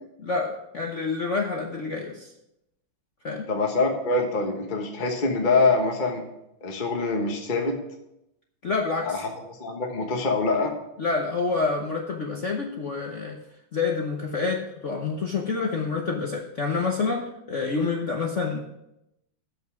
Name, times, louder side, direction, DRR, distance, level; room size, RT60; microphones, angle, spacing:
voice 1, 0.2-2.3 3.2-3.4 8.6-9.2 11.0-13.4 13.7-18.6, left 4 dB, 50° left, 1 dB, 0.9 m, -28 dB
voice 2, 3.5-6.2 6.6-7.8 9.0-10.7, left 3 dB, 25° left, 2 dB, 1.3 m, -25 dB
13.5 x 5.5 x 5.9 m, 0.85 s
omnidirectional pair, 2.3 m